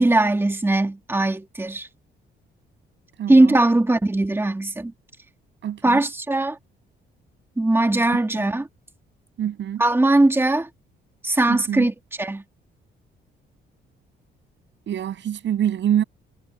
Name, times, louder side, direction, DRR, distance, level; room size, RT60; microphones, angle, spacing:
voice 1, 0.0-1.9 3.3-4.9 5.8-6.6 7.6-8.7 9.8-10.7 11.2-12.4, right 2 dB, 10° right, 2.3 m, -20 dB
voice 2, 3.2-3.6 5.6-6.0 8.4-8.5 9.4-9.8 11.5-11.9 14.9-16.0, right 10 dB, 70° right, 6.9 m, -25 dB
cardioid pair, 90°, 20 cm